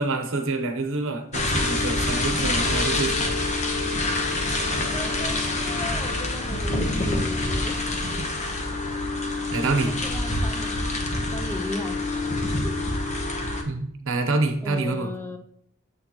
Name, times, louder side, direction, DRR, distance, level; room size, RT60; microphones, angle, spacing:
voice 1, 0.0-3.4 8.0-8.2 9.5-9.9 13.6-15.1, right 3 dB, 65° right, 6 dB, 0.9 m, -27 dB
sound 1, 1.3-13.6, left 2 dB, 30° left, 1.0 m, -26 dB
voice 2, 4.9-7.8 10.0-11.0 11.3-12.0 12.6-12.8 14.6-15.4, left 1 dB, 10° left, 5 dB, 0.5 m, -36 dB
7.4 x 6.4 x 3.0 m, 0.70 s
head